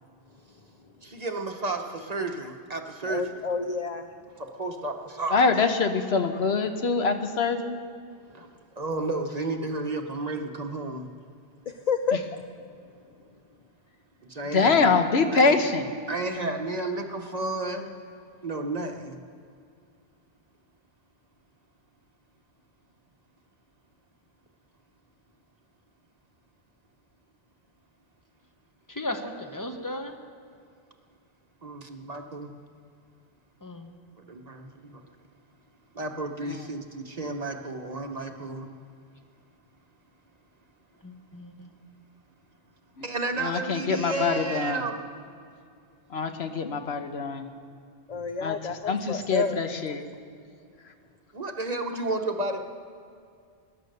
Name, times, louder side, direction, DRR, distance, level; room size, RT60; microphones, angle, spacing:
voice 1, 1.0-3.3 4.4-5.4 8.3-8.5 8.8-11.1 14.3-15.0 15.3-15.6 16.1-17.9 18.4-19.2 31.6-32.5 34.3-35.0 35.9-38.7 43.0-45.0 51.3-52.6, right 2 dB, 40° right, 4 dB, 1.0 m, -32 dB
voice 2, 3.1-4.0 11.9-12.2 48.1-49.6, left 5 dB, 45° left, 7 dB, 0.6 m, -29 dB
voice 3, 5.3-7.8 14.5-15.8 36.5-36.7 43.4-44.8 46.1-47.4 48.4-48.5 48.9-50.0, left 4 dB, 75° left, 6 dB, 1.2 m, -24 dB
voice 4, 28.9-30.2 33.6-34.0 41.0-41.7, left 1 dB, 20° left, 4 dB, 1.1 m, -36 dB
20.0 x 10.0 x 6.6 m, 2.4 s
omnidirectional pair, 1.1 m